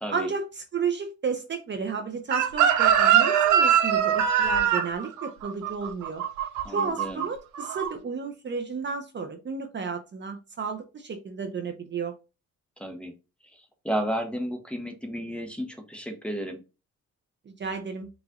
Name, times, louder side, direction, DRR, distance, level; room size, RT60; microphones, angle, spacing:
voice 1, 0.1-6.2 6.7-12.1 17.5-18.1, right 5 dB, 40° right, 0.7 m, -32 dB
Chicken rooster, 2.3-7.3 7.5-7.9, right 9 dB, 75° right, 0.8 m, -22 dB
voice 2, 6.6-7.3 12.8-13.1 13.5-16.6, equal, 5° left, 1.0 m, -33 dB
5.0 x 2.5 x 3.6 m
cardioid pair, 90°, 30 cm